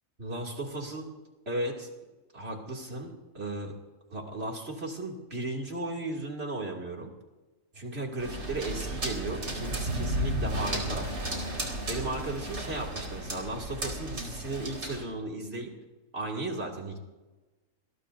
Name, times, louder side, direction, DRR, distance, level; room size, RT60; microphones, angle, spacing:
voice 1, 0.2-1.1 1.5-1.9 2.3-3.7 4.1-7.1 7.7-11.1 11.9-15.7 16.1-17.0, right 2 dB, 45° right, 0 dB, 2.9 m, -35 dB
sound 1, 8.2-15.0, right 1 dB, 75° right, 4.5 m, -34 dB
25.0 x 21.5 x 2.7 m, 1.2 s
omnidirectional pair, 1.5 m